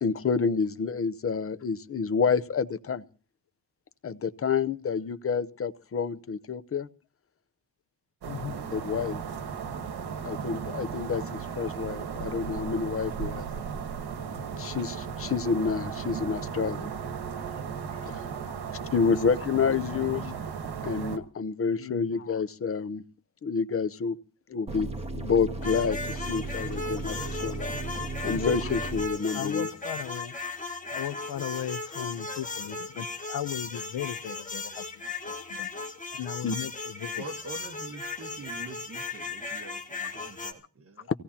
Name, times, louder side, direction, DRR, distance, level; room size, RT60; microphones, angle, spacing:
voice 1, 0.0-3.0 4.0-6.9 8.7-9.2 10.2-13.4 14.6-16.9 18.0-18.2 18.9-20.2 20.8-23.0 23.4-24.2 24.5-27.8 28.2-29.7 32.4-32.6 36.4-36.6, left 5 dB, 35° left, 0.8 m, -28 dB
sound 1, 8.2-21.2, right 6 dB, 70° right, 1.5 m, -36 dB
voice 2, 8.3-8.7 18.4-18.6 19.1-19.2 19.8-20.4 21.8-22.2 28.3-28.5 29.2-30.4 30.9-35.7 36.1-37.2, left 11 dB, 65° left, 0.8 m, -37 dB
sound 2, 24.7-29.1, right 3 dB, 15° right, 1.5 m, -35 dB
sound 3, 25.6-40.5, left 3 dB, 20° left, 1.6 m, -37 dB
voice 3, 37.1-41.1, right 3 dB, 35° right, 1.5 m, -44 dB
25.0 x 16.5 x 2.9 m
wide cardioid pair, 140°, 40 cm